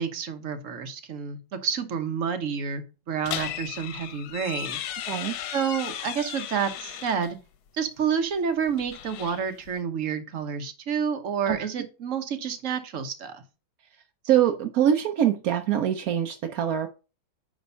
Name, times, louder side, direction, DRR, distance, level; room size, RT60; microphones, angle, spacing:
voice 1, 0.0-4.8 5.5-7.4 7.7-13.4, right 7 dB, 50° right, 1.1 m, -29 dB
sound 1, 3.2-7.3 8.6-9.8, left 11 dB, 80° left, 1.5 m, -36 dB
voice 2, 5.1-5.4 11.5-11.6 14.2-16.9, right 10 dB, 70° right, 0.8 m, -23 dB
9.5 x 3.5 x 5.5 m
omnidirectional pair, 2.3 m